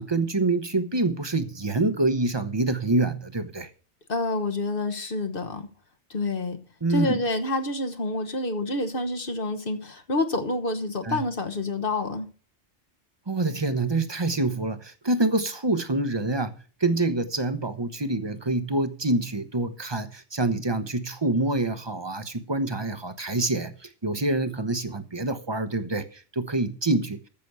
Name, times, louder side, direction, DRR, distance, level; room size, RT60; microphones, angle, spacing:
voice 1, 0.0-3.7 6.8-7.2 11.0-11.2 13.3-16.5 16.8-27.2, right 2 dB, 25° right, 0.9 m, -26 dB
voice 2, 4.1-5.7 6.1-6.6 6.9-12.3, left 2 dB, 50° left, 1.4 m, -28 dB
14.5 x 6.1 x 6.8 m
omnidirectional pair, 1.2 m